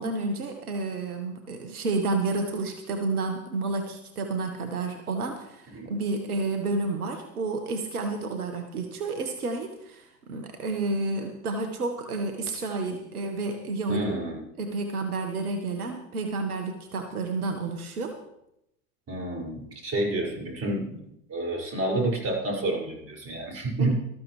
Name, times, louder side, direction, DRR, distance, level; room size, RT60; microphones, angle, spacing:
voice 1, 0.0-14.2 14.6-18.2 23.8-23.9, right 3 dB, 80° right, 6 dB, 1.4 m, -30 dB
voice 2, 13.9-14.4 19.1-21.0 21.3-23.9, right 2 dB, 35° right, -1 dB, 5.9 m, -29 dB
19.5 x 13.5 x 3.3 m, 0.82 s
hypercardioid pair, 80°, 43 cm